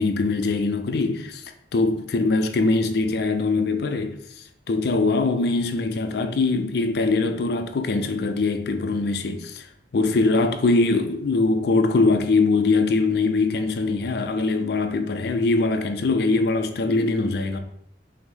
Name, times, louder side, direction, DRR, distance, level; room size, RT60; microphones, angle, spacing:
voice 1, 0.0-4.2 4.7-9.7 9.9-17.6, left 3 dB, 60° left, 0.4 m, -22 dB
5.6 x 2.0 x 3.1 m
head